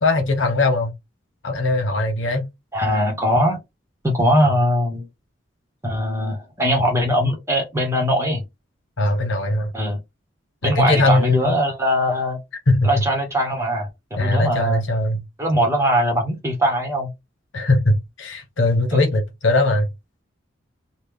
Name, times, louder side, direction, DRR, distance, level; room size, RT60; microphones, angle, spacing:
voice 1, 0.0-0.9 1.4-2.4 9.0-9.7 10.6-11.5 12.7-12.9 14.2-15.2 17.5-19.9, left 2 dB, 75° left, 1.1 m, -20 dB
voice 2, 2.7-3.6 4.0-5.1 5.8-8.4 9.7-10.0 10.6-12.4 12.8-14.8 15.4-17.1, equal, 15° right, 1.0 m, -21 dB
3.1 x 2.3 x 3.6 m
head